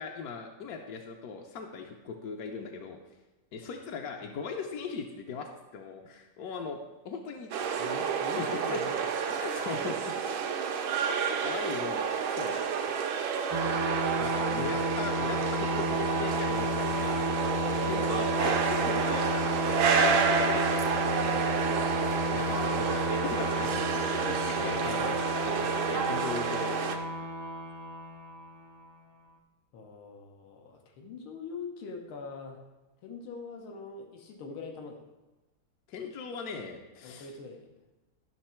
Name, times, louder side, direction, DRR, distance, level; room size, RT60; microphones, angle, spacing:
voice 1, 0.0-3.0 3.5-6.8 7.0-7.5 8.3-8.8 9.3-10.4 11.1-11.2 11.4-12.6 13.6-13.8 14.2-17.3 17.6-22.0 22.2-25.2 25.5-27.0 35.9-37.3, left 5 dB, 60° left, 1 dB, 1.1 m, -39 dB
sound 1, 7.5-27.0, right 6 dB, 80° right, 1.6 m, -30 dB
voice 2, 7.7-9.2 24.5-25.3 29.7-32.6 33.0-35.1 37.0-37.7, left 4 dB, 85° left, 3 dB, 2.0 m, -43 dB
sound 2, 13.5-28.9, equal, 35° right, 0.4 m, -32 dB
12.0 x 6.2 x 4.4 m, 1.1 s
omnidirectional pair, 2.3 m